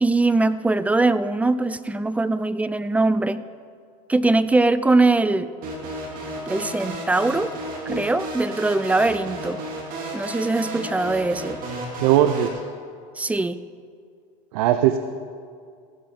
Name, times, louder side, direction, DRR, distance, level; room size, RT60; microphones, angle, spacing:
voice 1, 0.0-3.5 4.1-5.5 6.5-7.5 7.9-9.6 10.1-11.6 13.2-13.6, right 2 dB, 10° right, 14 dB, 0.4 m, -21 dB
sound 1, 5.6-12.5, right 1 dB, 50° right, 2.8 m, -33 dB
voice 2, 12.0-12.6 14.5-15.0, right 11 dB, 80° right, 10 dB, 0.6 m, -19 dB
16.5 x 12.5 x 3.8 m, 2.2 s
supercardioid pair, 115°, 18 cm